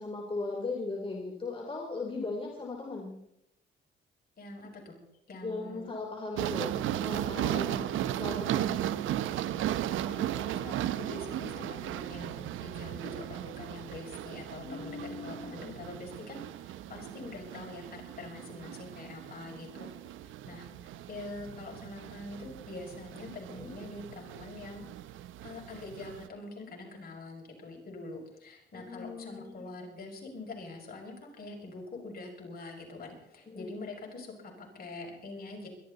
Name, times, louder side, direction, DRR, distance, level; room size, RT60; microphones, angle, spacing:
voice 1, 0.0-3.2 5.4-7.9 8.2-9.3 14.6-15.7 23.6-23.7 28.7-29.6 33.5-33.7, left 3 dB, 25° left, 0 dB, 3.5 m, -38 dB
voice 2, 4.4-5.0 5.3-6.0 7.5-7.9 10.0-19.9 20.2-24.8 25.4-35.7, left 2 dB, 50° left, 0 dB, 6.2 m, -44 dB
sound 1, 6.4-26.3, right 12 dB, 80° right, 0.8 m, -36 dB
22.5 x 13.0 x 4.1 m, 0.80 s
cardioid pair, 90°, 20 cm